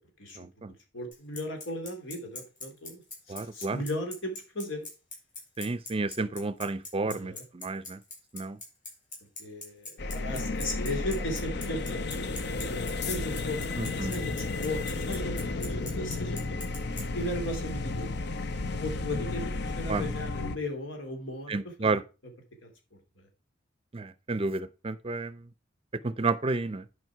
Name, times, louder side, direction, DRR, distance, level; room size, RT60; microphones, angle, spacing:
voice 1, 0.4-0.7 3.3-3.8 5.6-8.0 8.3-8.6 13.8-14.1 19.9-20.1 21.5-22.0 23.9-25.5 26.0-26.8, right 3 dB, 30° right, 0.5 m, -31 dB
voice 2, 0.9-3.0 3.5-4.8 7.0-7.4 9.4-12.3 12.6-13.7 14.1-16.4 17.1-18.2 18.8-22.0 22.6-22.7 23.2-23.3, left 1 dB, 85° left, 2.9 m, -36 dB
Bicycle, 1.1-17.0, left 3 dB, 45° left, 5.7 m, -40 dB
sound 1, 10.0-20.6, left 3 dB, 60° left, 0.8 m, -33 dB
11.0 x 5.2 x 4.6 m
head